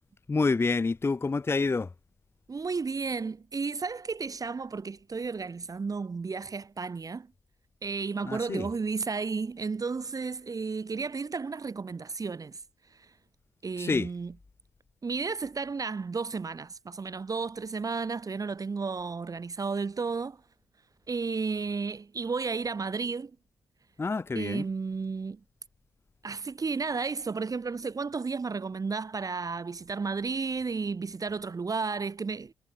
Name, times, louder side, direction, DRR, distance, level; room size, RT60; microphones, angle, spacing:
voice 1, 0.3-1.9 8.3-8.7 13.8-14.1 24.0-24.6, left 4 dB, 25° left, 0.7 m, -27 dB
voice 2, 2.5-7.3 7.8-12.6 12.9-13.1 13.6-14.3 15.0-20.4 21.1-23.3 24.3-25.4 26.2-32.5, right 4 dB, 35° right, 1.8 m, -33 dB
hypercardioid pair, 40°, 10 cm